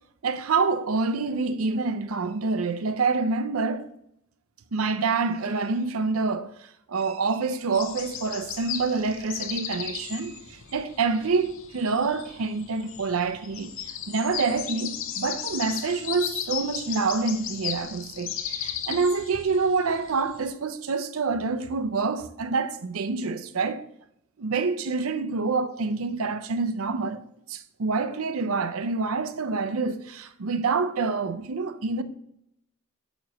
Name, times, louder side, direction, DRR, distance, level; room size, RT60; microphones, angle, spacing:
voice 1, 0.2-3.9 4.7-23.8 24.4-27.2 27.5-32.0, right 4 dB, 80° right, 0.6 m, -27 dB
sound 1, 7.7-20.5, left 9 dB, 65° left, 0.6 m, -36 dB
8.9 x 3.1 x 6.2 m
head